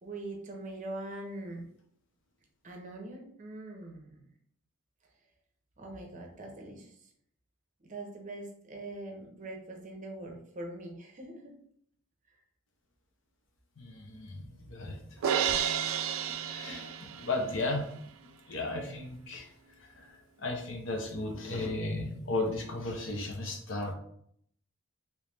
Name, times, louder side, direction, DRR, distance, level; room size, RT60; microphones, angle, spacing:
voice 1, 0.0-1.6 2.6-4.3 5.8-6.9 7.8-11.5, right 2 dB, 35° right, 1 dB, 0.6 m, -42 dB
voice 2, 13.8-15.0 16.3-17.9 18.5-19.5 19.8-20.1 20.4-23.9, left 2 dB, 60° left, 2 dB, 0.7 m, -35 dB
Crash cymbal, 15.2-17.5, right 8 dB, 70° right, 0.3 m, -31 dB
3.1 x 3.0 x 3.3 m, 0.67 s
head